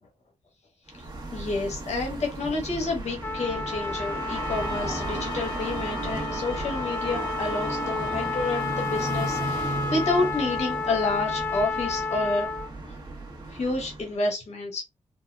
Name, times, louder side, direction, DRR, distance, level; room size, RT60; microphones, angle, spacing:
sound 1, 0.9-14.2, right 2 dB, 40° right, 0.9 m, -35 dB
voice 1, 1.3-12.5 12.9-13.0 13.5-14.8, left 2 dB, 70° left, 1.2 m, -29 dB
Trumpet, 3.2-12.7, left 4 dB, 20° left, 0.4 m, -32 dB
sound 2, 4.2-9.6, equal, 35° left, 0.8 m, -42 dB
4.2 x 2.1 x 2.3 m
wide cardioid pair, 125°, 12 cm